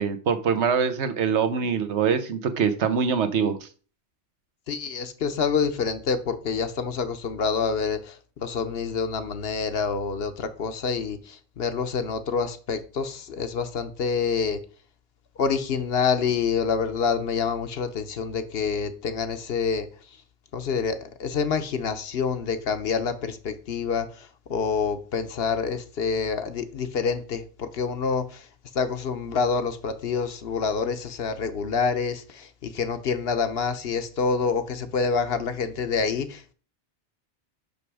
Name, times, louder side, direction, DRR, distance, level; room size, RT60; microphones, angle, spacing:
voice 1, 0.0-3.7, right 6 dB, 85° right, 1.1 m, -24 dB
voice 2, 4.7-14.6 15.4-19.9 20.5-28.5 28.7-36.5, left 5 dB, 65° left, 1.0 m, -27 dB
6.0 x 5.3 x 4.8 m
omnidirectional pair, 1.1 m